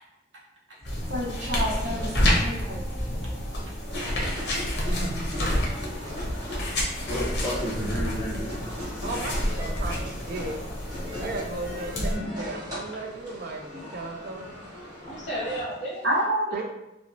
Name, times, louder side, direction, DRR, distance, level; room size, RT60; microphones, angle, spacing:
sound 1, 0.8-12.1, left 1 dB, 65° left, 0.7 m, -29 dB
voice 1, 1.1-2.8 16.0-16.6, right 1 dB, 80° right, -4 dB, 0.8 m, -28 dB
sound 2, 3.9-15.6, equal, 20° right, 0.9 m, -38 dB
voice 2, 5.2-6.6 15.0-16.2, right 1 dB, 40° left, -7 dB, 1.2 m, -36 dB
voice 3, 7.1-8.6, equal, 5° left, -9 dB, 0.7 m, -31 dB
voice 4, 9.0-10.6 11.2-14.5 16.5-16.6, right 3 dB, 55° right, 4 dB, 0.3 m, -36 dB
2.8 x 2.0 x 2.5 m, 0.91 s
head